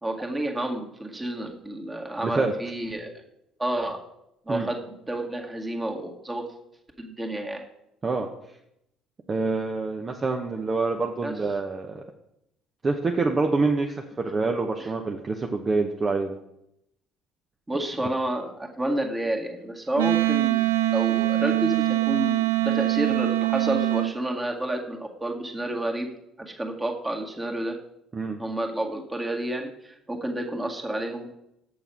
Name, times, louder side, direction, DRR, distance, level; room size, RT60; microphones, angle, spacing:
voice 1, 0.0-3.1 3.6-4.0 4.5-6.4 7.0-7.6 11.2-11.3 17.7-26.1 26.4-27.8 28.4-31.3, right 1 dB, 20° right, 1 dB, 2.0 m, -30 dB
voice 2, 2.2-2.5 4.5-4.7 8.0-8.3 9.3-12.0 12.8-16.3 28.1-28.4, right 3 dB, 35° right, 3 dB, 0.9 m, -26 dB
Wind instrument woodwind instrument, 20.0-24.1, right 19 dB, 80° right, 0.5 m, -23 dB
7.0 x 6.6 x 5.9 m, 0.80 s
hypercardioid pair, 55°, 0 cm